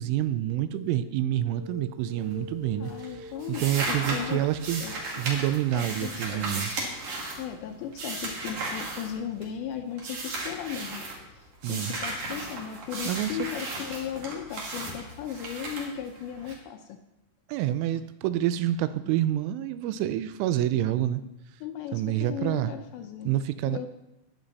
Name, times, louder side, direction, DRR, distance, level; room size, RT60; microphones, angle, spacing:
voice 1, 0.0-4.8 5.2-6.7 11.6-12.0 13.0-13.5 17.5-21.2 21.9-22.7 23.2-23.9, right 12 dB, 85° right, 12 dB, 3.0 m, -28 dB
sound 1, 0.7-1.0 1.4-5.2, left 1 dB, 55° left, 1.9 m, -45 dB
sound 2, 2.2-2.6 2.9-9.6 10.0-11.2 11.6-16.5, right 2 dB, 50° right, 3.5 m, -35 dB
voice 2, 2.8-4.5 4.8-5.0 5.7-6.7 7.4-17.0 21.6-23.3 23.7-23.9, left 9 dB, 80° left, 5 dB, 2.7 m, -37 dB
20.0 x 7.4 x 4.1 m, 0.91 s
omnidirectional pair, 5.6 m